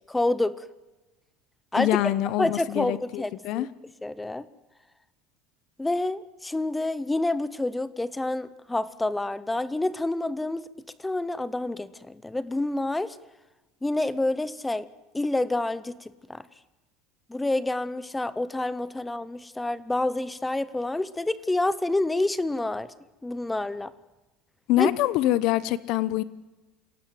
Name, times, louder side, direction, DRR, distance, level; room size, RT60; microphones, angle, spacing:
voice 1, 0.1-0.6 1.7-1.9 2.4-3.7 4.0-4.4 5.8-10.7 11.0-13.2 13.8-14.8 15.1-16.0 16.3-16.4 17.3-22.9 23.2-23.9 24.8-24.9, left 2 dB, 5° left, 17 dB, 0.7 m, -28 dB
voice 2, 1.8-3.7 24.7-26.2, left 14 dB, 45° left, 18 dB, 0.9 m, -25 dB
27.5 x 17.5 x 7.7 m, 1.1 s
cardioid pair, 175°, 0 cm